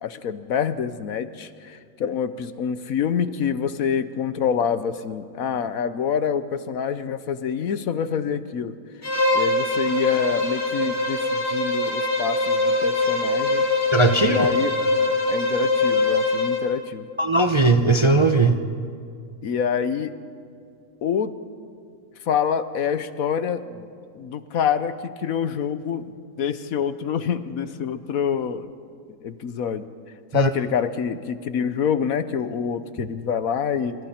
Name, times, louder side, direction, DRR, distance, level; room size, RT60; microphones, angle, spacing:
voice 1, 0.0-8.7 9.3-13.7 14.2-14.7 15.3-17.1 19.4-20.1 21.0-21.3 22.3-23.9 24.1-26.1 26.4-28.7 29.2-29.8 30.3-34.0, left 7 dB, 70° left, 12 dB, 1.2 m, -26 dB
Bowed string instrument, 9.0-16.7, left 2 dB, 10° right, 3.5 m, -23 dB
voice 2, 13.9-14.5 17.2-18.6 30.3-30.5, right 3 dB, 25° right, 6 dB, 0.7 m, -18 dB
27.0 x 26.5 x 4.3 m, 2.3 s
omnidirectional pair, 1.6 m